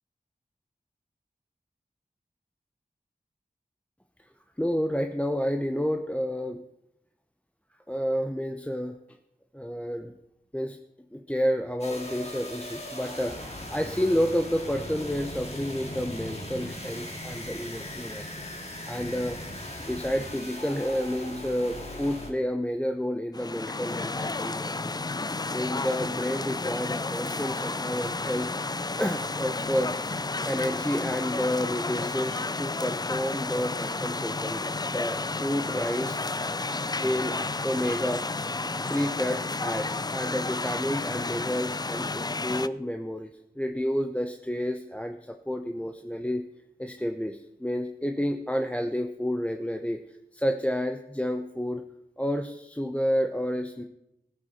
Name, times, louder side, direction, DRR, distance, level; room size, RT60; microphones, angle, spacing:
voice 1, 4.6-6.6 7.9-9.0 9.5-10.1 10.5-10.8 11.1-18.3 18.9-19.4 19.9-25.0 25.5-28.5 29.0-30.1 30.4-36.4 37.0-37.4 37.6-38.3 38.9-43.3 43.6-46.4 46.8-50.0 50.3-51.8 52.2-53.8, equal, 10° left, 5 dB, 0.8 m, -30 dB
sound 1, 11.8-22.3, left 1 dB, 40° left, 2.5 m, -39 dB
sound 2, 23.3-42.7, left 3 dB, 25° left, 0.4 m, -31 dB
15.5 x 8.2 x 4.4 m, 0.82 s
wide cardioid pair, 45°, 16 cm